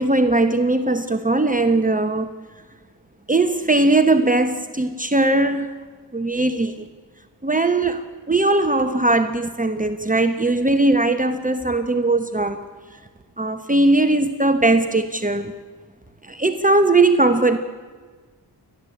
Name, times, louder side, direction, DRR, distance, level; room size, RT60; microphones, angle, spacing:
voice 1, 0.0-2.3 3.3-5.7 6.1-6.7 7.4-12.6 13.4-15.5 16.3-17.6, right 2 dB, 20° right, 7 dB, 1.2 m, -19 dB
29.5 x 12.5 x 8.6 m, 1.5 s
wide cardioid pair, 85°, 41 cm